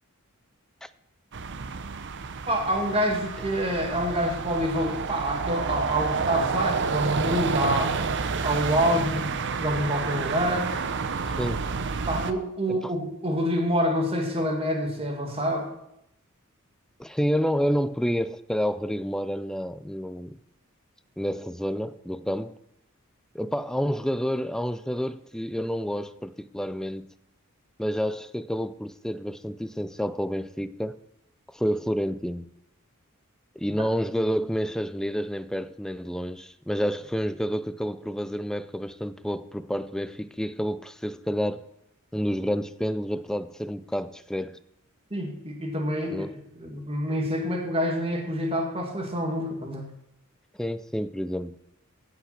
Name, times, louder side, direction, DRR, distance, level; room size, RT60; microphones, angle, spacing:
sound 1, 1.3-12.3, right 5 dB, 55° right, 0.7 m, -29 dB
voice 1, 2.5-8.0 8.4-9.3 9.6-10.7 12.1-15.7 45.1-46.2 46.6-49.9, equal, 25° right, 2.1 m, -27 dB
voice 2, 17.0-20.4 21.2-22.6 23.3-27.1 27.8-31.0 31.5-32.5 33.6-41.7 42.1-44.6 46.1-46.3 50.6-51.6, equal, 5° left, 0.3 m, -29 dB
16.0 x 5.9 x 5.8 m
head